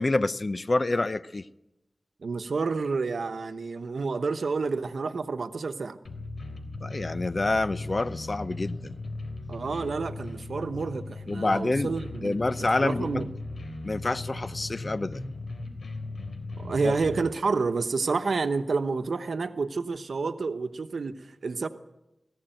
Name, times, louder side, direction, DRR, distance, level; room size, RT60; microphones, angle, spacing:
voice 1, 0.0-1.4 6.8-8.9 11.3-11.9 12.2-13.2 13.8-15.2 16.8-16.9, left 2 dB, 45° left, 14 dB, 0.7 m, -27 dB
voice 2, 2.2-6.0 9.5-12.4 12.7-13.3 16.6-21.7, right 4 dB, 90° right, 10 dB, 1.0 m, -29 dB
sound 1, 6.0-17.2, left 2 dB, 80° left, 3.6 m, -38 dB
19.5 x 15.5 x 9.1 m, 0.94 s
wide cardioid pair, 70°, 0 cm